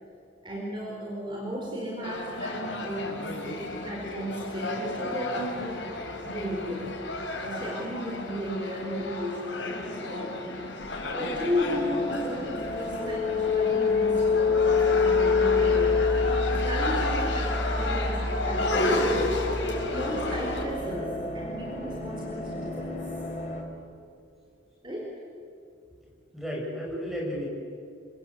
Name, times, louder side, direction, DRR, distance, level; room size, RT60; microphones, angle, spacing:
voice 1, 0.4-5.8 6.2-6.9 7.4-10.5 11.1-16.0 16.5-19.1 19.5-23.0 24.8-25.2, equal, 25° right, -2 dB, 4.7 m, -34 dB
sound 1, 2.0-20.6, left 2 dB, 75° left, 5.1 m, -32 dB
sound 2, 10.8-23.6, left 4 dB, 40° left, 4.5 m, -27 dB
voice 2, 26.0-27.5, equal, ahead, -2 dB, 6.3 m, -34 dB
27.0 x 25.0 x 8.2 m, 2.6 s
head